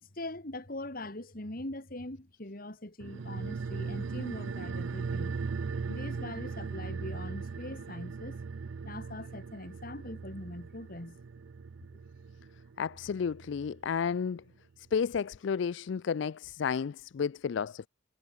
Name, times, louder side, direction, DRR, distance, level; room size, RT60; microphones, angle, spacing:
voice 1, 0.0-5.4 5.9-8.4 8.8-11.2, left 1 dB, 45° left, 2.6 m, -42 dB
sound 1, 3.0-13.9 14.1-14.2, right 5 dB, 70° right, 0.5 m, -39 dB
voice 2, 12.8-14.4 14.9-17.9, left 6 dB, 65° left, 0.4 m, -32 dB
head